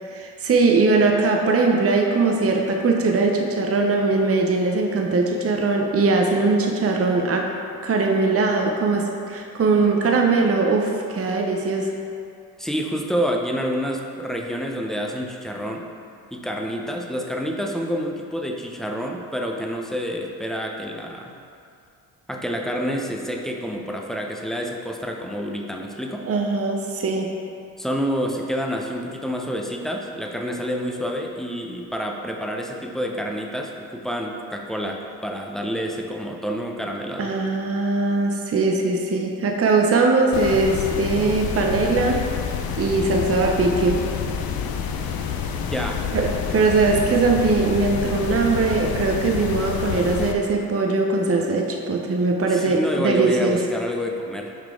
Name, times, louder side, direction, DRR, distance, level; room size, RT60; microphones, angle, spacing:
voice 1, 0.1-7.5 7.8-11.9 26.3-27.3 37.2-42.3 42.8-44.1 46.1-53.6, right 3 dB, 30° right, 1 dB, 0.8 m, -21 dB
voice 2, 12.6-15.9 16.3-21.3 22.3-26.3 27.8-37.3 45.7-46.0 49.8-49.9 52.5-54.5, equal, ahead, 1 dB, 0.8 m, -28 dB
sound 1, 40.3-50.3, left 7 dB, 55° left, 0.7 m, -28 dB
6.6 x 4.9 x 3.7 m, 2.4 s
hypercardioid pair, 50°, 44 cm